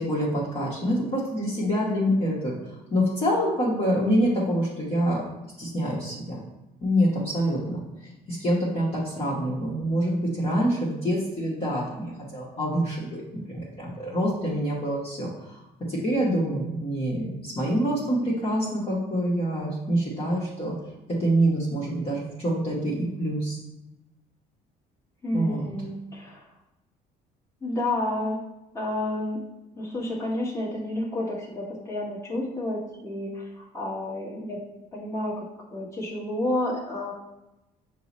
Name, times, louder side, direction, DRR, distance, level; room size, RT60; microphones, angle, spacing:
voice 1, 0.0-2.5 2.9-5.2 5.6-6.4 6.8-7.8 8.3-15.6 15.9-20.7 21.2-23.6 25.3-25.7, equal, 35° left, -6 dB, 1.0 m, -26 dB
voice 2, 25.2-26.4 27.6-28.4 28.7-29.4 29.7-34.6 34.9-37.1, left 1 dB, 15° left, -5 dB, 1.2 m, -30 dB
5.5 x 2.0 x 4.1 m, 0.97 s
cardioid pair, 110°, 17 cm